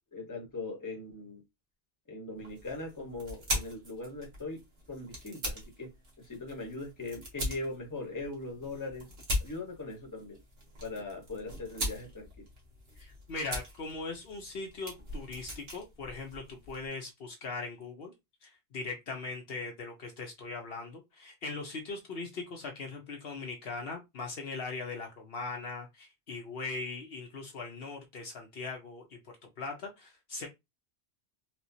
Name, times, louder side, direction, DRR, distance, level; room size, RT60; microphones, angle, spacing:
voice 1, 0.1-1.4 2.1-4.6 4.9-5.9 6.2-9.1 9.4-10.4 10.8-12.4, left 2 dB, 20° left, 1.0 m, -40 dB
sound 1, 2.4-16.9, equal, 65° right, 1.6 m, -40 dB
voice 2, 13.0-18.1 18.4-30.5, left 3 dB, 65° left, 0.9 m, -40 dB
4.3 x 2.3 x 2.7 m
omnidirectional pair, 1.1 m